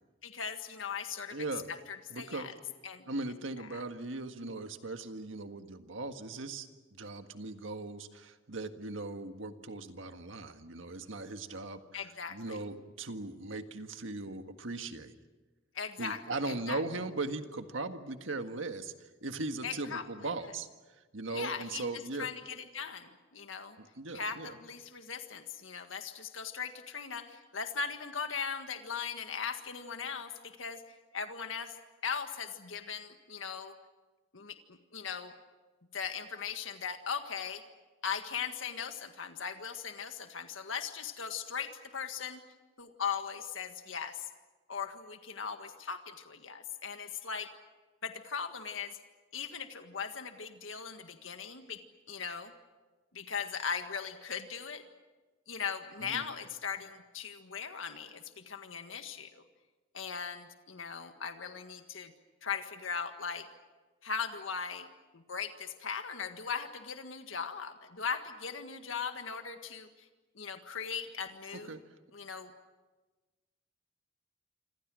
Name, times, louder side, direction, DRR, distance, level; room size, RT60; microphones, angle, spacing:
voice 1, 0.2-1.4 1.7-2.5 2.8-3.1 3.7-3.8 11.9-12.6 15.8-16.8 19.6-20.0 21.3-21.8 22.2-23.8 24.1-30.8 31.1-31.8 32.0-33.7 34.3-35.3 35.9-37.6 38.0-42.4 42.8-44.3 44.7-47.5 48.0-49.0 49.3-51.8 52.1-52.5 53.1-54.8 55.5-59.4 59.9-62.1 62.4-63.5 64.0-64.9 65.1-69.9 70.4-71.8 72.1-72.5, left 6 dB, 85° left, 7 dB, 1.7 m, -39 dB
voice 2, 1.3-1.7 2.1-2.5 3.1-15.1 16.0-20.7 21.1-22.3 23.8-24.5 56.0-56.3 71.5-71.8, right 2 dB, 75° right, 7 dB, 1.7 m, -39 dB
27.0 x 26.5 x 6.3 m, 1.2 s
head